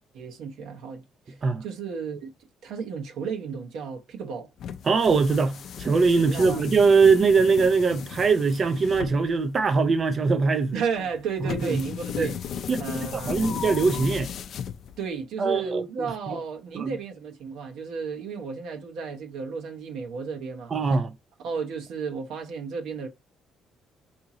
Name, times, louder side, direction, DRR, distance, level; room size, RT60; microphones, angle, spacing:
voice 1, 0.1-2.3 2.6-4.5 6.2-6.6 10.7-12.4 12.8-13.4 15.0-20.7 21.4-23.1, right 5 dB, 80° right, 0.9 m, -33 dB
sound 1, 4.6-15.2, left 8 dB, 60° left, 0.4 m, -36 dB
voice 2, 4.8-10.7 11.4-11.8 12.2-12.3 12.7-12.8 13.1-14.3 15.4-15.9 16.3-16.4 16.7-16.9 20.7-21.1, right 4 dB, 35° right, 0.4 m, -22 dB
2.9 x 2.7 x 3.7 m
cardioid pair, 125°, 0 cm